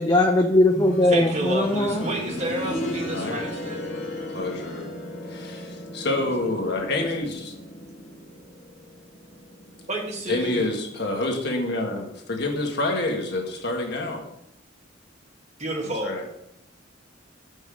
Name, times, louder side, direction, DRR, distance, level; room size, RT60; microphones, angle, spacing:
voice 1, 0.0-2.1, left 1 dB, 20° left, 3 dB, 0.5 m, -20 dB
sound 1, 0.7-11.5 11.8-11.9 12.8-12.9, equal, 85° left, 1.9 m, -35 dB
voice 2, 1.1-3.8 9.9-10.8 15.6-16.2, right 1 dB, 35° right, 2 dB, 1.4 m, -30 dB
voice 3, 4.3-4.9 5.3-5.7 5.9-7.5 10.3-14.2 16.0-16.2, left 2 dB, 60° left, 1 dB, 1.6 m, -27 dB
7.3 x 5.4 x 5.0 m, 0.77 s
head